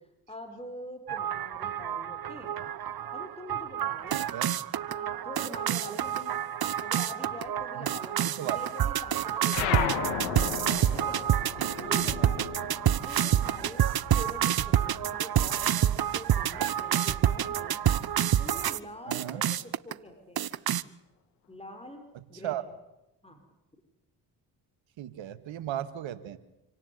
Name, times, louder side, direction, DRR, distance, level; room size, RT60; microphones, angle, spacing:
voice 1, 0.3-2.5 3.1-4.2 4.9-6.4 6.8-10.1 10.9-11.3 11.7-12.5 13.0-13.8 14.1-17.8 18.4-20.4 21.5-22.0 22.3-22.6 23.2-23.4, left 1 dB, 10° left, 6 dB, 5.8 m, -45 dB
sound 1, 1.1-18.8 19.1-19.9 20.4-20.8, right 10 dB, 45° right, 1.1 m, -28 dB
voice 2, 4.1-4.5 7.8-7.9 8.2-8.6 11.6-11.9 19.1-19.4 22.4-22.6 25.0-26.4, right 12 dB, 65° right, 13 dB, 2.1 m, -36 dB
sound 2, 9.5-14.4 14.7-16.1, left 8 dB, 85° left, 2.7 m, -35 dB
27.0 x 18.0 x 9.8 m, 0.93 s
hypercardioid pair, 45°, 49 cm